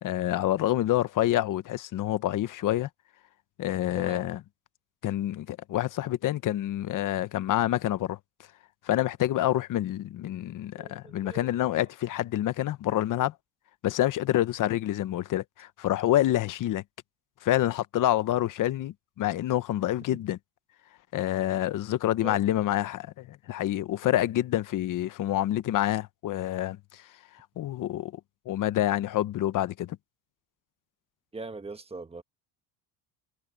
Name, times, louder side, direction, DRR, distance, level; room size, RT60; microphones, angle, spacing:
voice 1, 0.0-2.9 3.6-4.4 5.0-8.2 8.8-13.3 13.8-16.8 17.4-20.4 21.1-27.1 27.3-28.1 28.5-30.0, left 13 dB, 40° left, 1.0 m, -27 dB
voice 2, 10.8-11.5 20.1-20.2 22.2-22.4 31.3-32.2, right 3 dB, 10° right, 1.3 m, -41 dB
cardioid pair, 140°, 47 cm